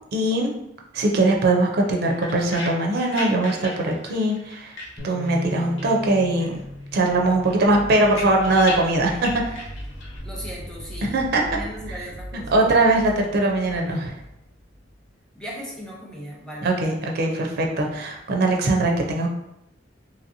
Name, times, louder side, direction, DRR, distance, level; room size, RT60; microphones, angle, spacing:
voice 1, 0.1-0.5 0.9-4.7 5.0-6.6 6.9-9.7 11.0-11.4 11.9-12.0 12.3-14.1 16.6-19.3, right 2 dB, 55° right, 1 dB, 0.4 m, -21 dB
sound 1, 1.8-5.5 5.8-6.6 6.9-10.2, left 2 dB, 80° left, 0.7 m, -37 dB
Bass guitar, 5.0-11.2, left 1 dB, 25° left, 1.0 m, -40 dB
sound 2, 6.8-15.6, equal, 55° left, 1.0 m, -40 dB
voice 2, 10.2-11.1 11.5-12.6 15.3-16.7, equal, 5° left, -4 dB, 0.6 m, -37 dB
2.9 x 2.7 x 2.6 m, 0.85 s
head